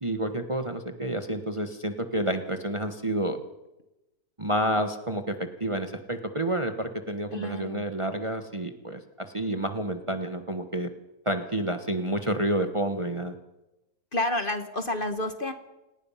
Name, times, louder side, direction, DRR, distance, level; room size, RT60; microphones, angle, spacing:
voice 1, 0.0-3.4 4.4-10.9 11.2-13.3, right 1 dB, 20° right, 6 dB, 1.2 m, -29 dB
voice 2, 7.3-7.8 14.1-15.5, left 1 dB, 35° left, 8 dB, 1.4 m, -29 dB
28.0 x 19.0 x 5.7 m, 0.99 s
omnidirectional pair, 1.6 m